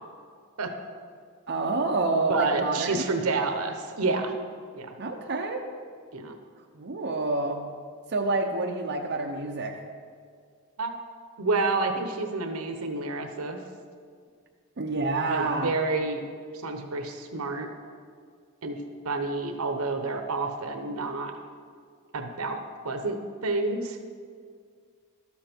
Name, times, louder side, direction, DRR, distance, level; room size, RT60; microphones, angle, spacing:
voice 1, 1.5-3.0 5.0-5.6 6.7-7.7 8.1-9.7 14.8-15.7, right 3 dB, 50° right, 0 dB, 0.8 m, -28 dB
voice 2, 2.3-4.3 4.7-4.9 6.1-6.4 10.8-10.9 11.4-13.6 15.3-16.2 16.6-17.7 18.6-21.3 22.1-24.0, right 3 dB, 75° right, 6 dB, 1.0 m, -29 dB
12.5 x 7.4 x 4.5 m, 2.1 s
head